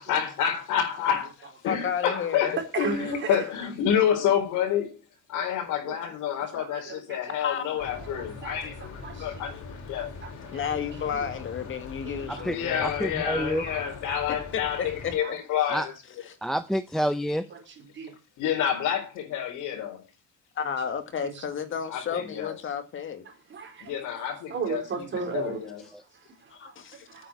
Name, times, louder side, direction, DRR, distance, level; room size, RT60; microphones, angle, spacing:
voice 1, 0.0-1.3 1.6-5.0 5.3-9.5 9.8-10.1 12.4-15.9 18.4-20.0 21.9-22.6 23.8-24.8 25.1-25.8, left 9 dB, 80° left, 4.1 m, -28 dB
voice 2, 1.6-2.6 7.4-7.7 8.6-8.7 9.5-9.6 10.5-13.0 14.8-15.4 16.3-16.4 20.6-23.3 26.5-27.1, left 7 dB, 40° left, 1.8 m, -32 dB
voice 3, 2.7-3.5 5.9-6.0 6.5-7.4 8.0-8.1 8.4-8.6 9.0-9.5 10.2-10.6 11.1-11.2 12.0-12.5 13.5-13.8 15.2-15.3 17.5-17.6 17.9-18.1 21.2-21.4 23.5-25.6 26.1-27.3, right 5 dB, 40° right, 4.2 m, -36 dB
sound 1, 7.8-15.2, left 4 dB, 65° left, 4.7 m, -42 dB
voice 4, 12.3-13.6 15.7-15.9 16.4-17.5 25.9-26.0, equal, ahead, 0.7 m, -28 dB
9.1 x 7.0 x 8.4 m
cardioid pair, 150°, 30 cm